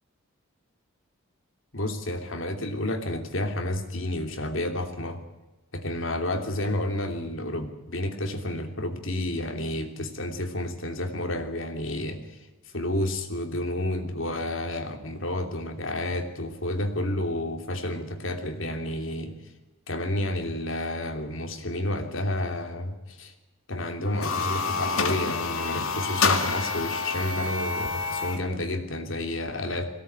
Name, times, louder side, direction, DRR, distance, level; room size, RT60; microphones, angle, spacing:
voice 1, 1.7-5.2 5.7-12.5 12.7-19.5 19.9-23.3 23.7-29.9, left 1 dB, 65° left, 4 dB, 3.0 m, -30 dB
sound 1, 24.1-28.5, left 4 dB, 85° left, 2.2 m, -28 dB
21.5 x 17.5 x 8.9 m, 1.1 s
head